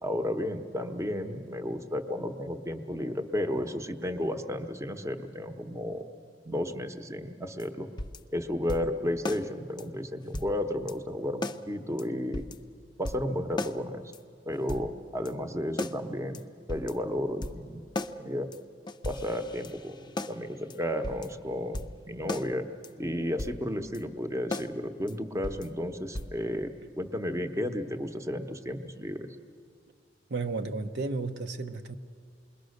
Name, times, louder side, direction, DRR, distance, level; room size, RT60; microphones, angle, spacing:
voice 1, 0.0-6.0 6.4-7.9 8.3-12.4 13.0-14.1 14.5-16.4 16.7-17.8 18.2-18.5 19.0-22.6 23.0-29.4, left 1 dB, 15° right, 1.0 m, -33 dB
sound 1, 7.6-7.7 8.0-8.2 8.7-8.9 9.3-9.5 9.8-9.9 10.3-10.5 10.9-11.0 11.4-11.6 12.0-12.1 12.3-12.6 13.1-13.3 13.6-13.8 14.1-14.2 14.7-14.9 15.3-15.4 15.8-16.0 16.3-16.4 16.7-16.9 17.4-17.6 18.0-18.2 18.5-18.6 18.9-20.4 20.7-20.8 21.0-21.3 21.7-22.0 22.3-22.5 22.8-22.9 23.4-23.6 23.9-24.0 24.5-24.7 25.1-25.2 25.4-25.7 26.2-26.4, left 2 dB, 25° left, 0.6 m, -35 dB
voice 2, 30.3-32.0, right 3 dB, 65° right, 0.8 m, -33 dB
27.5 x 21.5 x 6.5 m
head